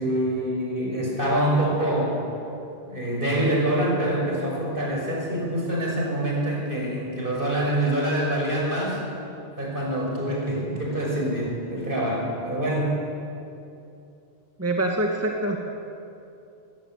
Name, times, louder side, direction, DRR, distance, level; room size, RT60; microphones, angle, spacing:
voice 1, 0.0-2.2 2.9-9.0 9.6-13.0, right 1 dB, 55° right, -2 dB, 6.7 m, -25 dB
voice 2, 14.6-15.6, right 1 dB, 15° right, 0 dB, 2.0 m, -25 dB
25.0 x 16.5 x 9.3 m, 2.7 s
omnidirectional pair, 1.1 m